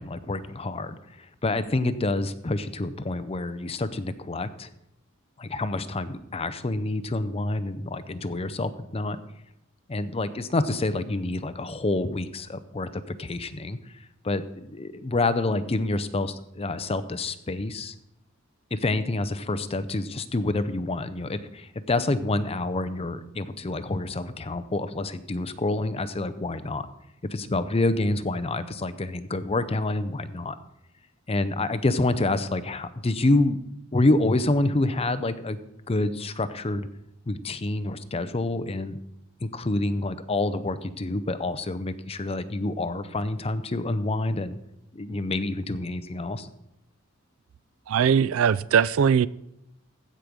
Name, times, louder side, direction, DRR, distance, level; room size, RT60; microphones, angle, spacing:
voice 1, 0.0-4.7 5.4-9.2 9.9-13.8 14.2-17.9 18.7-26.9 27.3-30.6 31.3-33.6 33.9-35.6 35.9-36.9 37.3-39.0 39.4-44.6 44.9-46.5, left 2 dB, 30° left, 0.6 m, -27 dB
voice 2, 47.9-49.3, right 7 dB, 75° right, 0.3 m, -20 dB
15.0 x 5.1 x 6.2 m
head